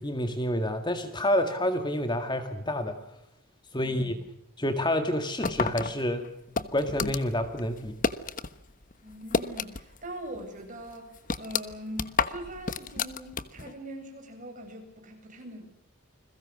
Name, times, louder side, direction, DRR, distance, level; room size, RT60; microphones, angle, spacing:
voice 1, 0.0-3.0 3.7-4.2 4.6-6.2 6.7-8.0, left 1 dB, 20° left, 7 dB, 1.9 m, -28 dB
voice 2, 3.8-4.2 9.0-15.7, right 1 dB, 35° right, 3 dB, 7.8 m, -42 dB
sound 1, 5.4-8.5 8.8-10.1 10.3-10.4 10.9-13.7, left 4 dB, 35° left, 1.2 m, -30 dB
29.5 x 21.5 x 6.4 m, 0.80 s
head